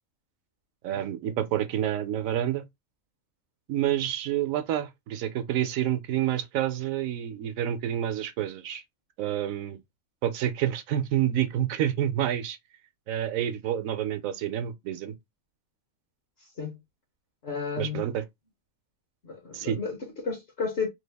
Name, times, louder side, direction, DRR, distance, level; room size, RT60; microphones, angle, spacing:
voice 1, 0.8-2.6 3.7-8.8 9.2-9.8 10.2-12.6 13.1-15.1 17.8-18.2 19.5-19.8, right 11 dB, 80° right, 1.0 m, -28 dB
voice 2, 17.4-18.0 19.2-20.9, left 5 dB, 55° left, 1.0 m, -32 dB
3.2 x 2.3 x 3.3 m
omnidirectional pair, 1.4 m